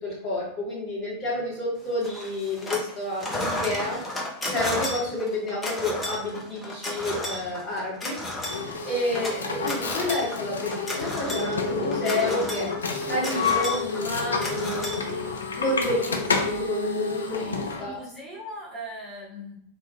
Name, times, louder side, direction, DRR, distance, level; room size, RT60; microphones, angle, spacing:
voice 1, 0.0-8.2 8.8-12.7 13.0-15.1 15.5-18.0, left 1 dB, 30° left, -7 dB, 1.4 m, -30 dB
sound 1, 2.0-2.9 3.2-15.6, left 1 dB, 15° left, 0.6 m, -33 dB
sound 2, 8.4-17.9, left 4 dB, 70° left, 0.3 m, -29 dB
voice 2, 9.1-9.6 17.8-19.5, equal, 5° right, -10 dB, 0.9 m, -40 dB
2.4 x 2.4 x 2.6 m, 0.70 s
figure-of-eight pair, 90°, 0 cm